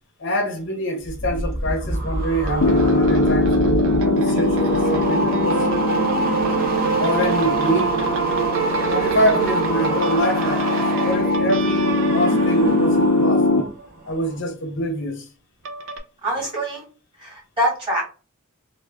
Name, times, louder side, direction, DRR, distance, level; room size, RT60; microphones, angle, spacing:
voice 1, 0.2-3.5 4.0-5.7 7.0-8.0 8.9-13.5 14.1-15.3, equal, 55° left, 0.7 m, -25 dB
sound 1, 1.0-13.7 14.0-14.4, right 2 dB, 45° right, 0.9 m, -26 dB
sound 2, 2.5-13.9 15.7-16.0, right 4 dB, 60° right, 0.5 m, -27 dB
Piano, 2.6-13.6, left 2 dB, 90° left, 0.5 m, -22 dB
voice 2, 16.2-16.8 17.2-18.0, equal, 25° right, 1.8 m, -24 dB
3.2 x 2.2 x 3.4 m
head